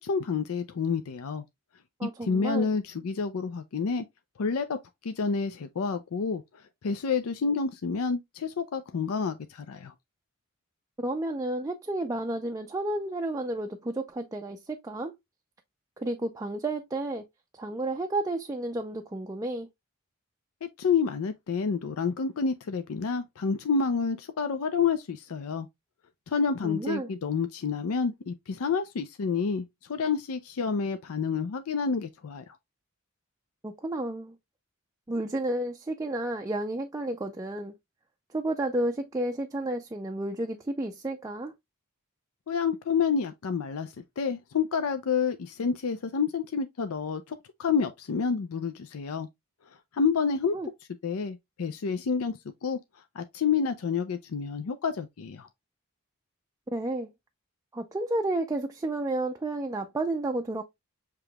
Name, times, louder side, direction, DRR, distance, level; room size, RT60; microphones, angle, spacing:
voice 1, 0.0-1.4 2.0-4.0 4.4-6.4 6.8-9.9 20.6-25.7 26.3-32.4 42.5-49.3 49.9-50.6 51.0-52.3 52.6-52.8 53.2-55.5, left 5 dB, 75° left, 0.5 m, -29 dB
voice 2, 2.0-2.7 11.0-15.1 16.0-17.2 17.6-19.7 26.6-27.1 33.6-34.3 35.1-37.7 38.3-41.5 50.5-50.7 56.7-57.1 57.7-60.6, right 2 dB, 15° right, 0.4 m, -31 dB
6.7 x 3.0 x 2.2 m
head